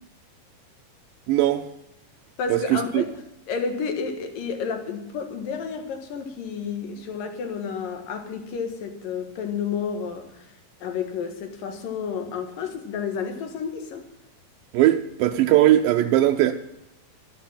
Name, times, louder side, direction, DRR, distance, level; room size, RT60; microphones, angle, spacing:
voice 1, 1.3-1.6 2.5-3.0 14.7-16.5, right 13 dB, 80° right, 2.4 m, -19 dB
voice 2, 2.4-3.1 3.5-10.5 10.8-14.0, left 6 dB, 70° left, 3.2 m, -31 dB
11.5 x 11.5 x 8.9 m
omnidirectional pair, 4.2 m